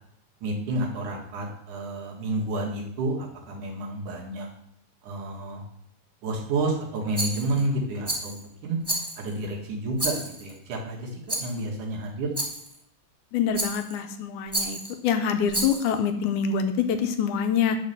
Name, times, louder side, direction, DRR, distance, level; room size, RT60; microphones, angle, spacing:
voice 1, 0.4-4.5 5.0-5.6 6.2-8.8 9.2-12.3, right 2 dB, 70° right, -2 dB, 3.3 m, -30 dB
Rattle, 7.1-7.6 8.0-8.4 8.8-9.4 10.0-10.5 11.3-11.6 12.3-12.7 13.5-14.0 14.5-14.9 15.5-16.0, right 1 dB, 25° right, 0.5 m, -30 dB
voice 2, 13.3-14.8 15.0-17.8, left 7 dB, 75° left, 7 dB, 2.0 m, -25 dB
10.0 x 4.4 x 6.7 m, 0.74 s
omnidirectional pair, 3.8 m